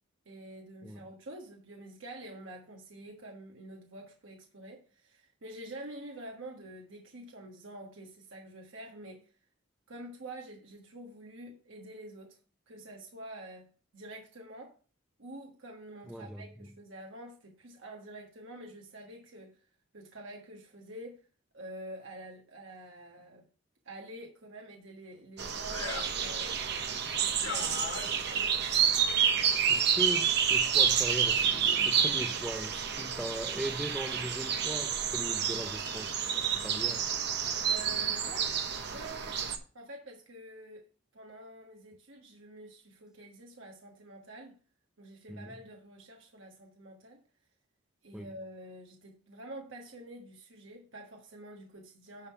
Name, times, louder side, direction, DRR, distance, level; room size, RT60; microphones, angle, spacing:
voice 1, 0.2-9.2 9.9-12.4 12.7-14.7 15.2-19.5 19.9-21.2 21.5-23.5 23.8-29.0 37.6-38.6 38.9-39.4 39.7-40.9 41.1-44.6 45.0-47.2 48.0-52.3, right 1 dB, 75° right, 1.5 m, -47 dB
voice 2, 16.1-16.7 29.7-37.1 45.3-45.5 48.1-48.3, equal, 5° right, 0.5 m, -39 dB
sound 1, 25.4-39.6, right 7 dB, 55° right, 1.0 m, -29 dB
sound 2, 25.6-26.2 27.4-28.3, left 5 dB, 75° left, 2.3 m, -39 dB
10.5 x 3.7 x 5.7 m
head